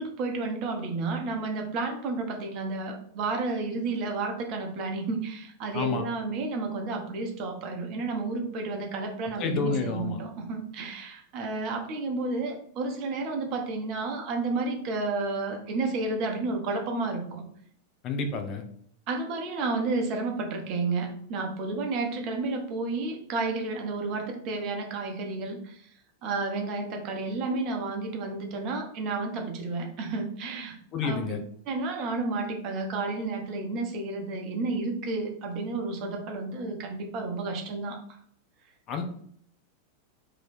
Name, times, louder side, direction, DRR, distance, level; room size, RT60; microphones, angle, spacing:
voice 1, 0.0-17.4 19.1-25.9 26.2-30.8 31.0-31.3 31.7-38.0, right 3 dB, 40° right, 3 dB, 0.8 m, -31 dB
voice 2, 5.7-6.0 9.4-10.2 18.0-18.6 30.9-31.4 38.9-39.0, left 4 dB, 35° left, 5 dB, 0.7 m, -29 dB
3.1 x 3.0 x 4.1 m, 0.62 s
figure-of-eight pair, 90°, 0 cm